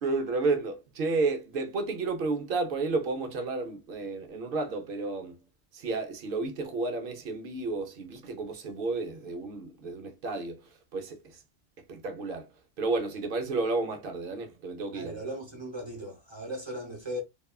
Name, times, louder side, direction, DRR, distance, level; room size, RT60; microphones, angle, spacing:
voice 1, 0.0-5.4 5.7-10.6 10.9-11.2 11.9-12.5 12.8-15.1, right 3 dB, 60° right, 0.7 m, -31 dB
voice 2, 14.9-17.2, equal, 25° right, 0.8 m, -37 dB
2.9 x 2.2 x 2.2 m
omnidirectional pair, 1.2 m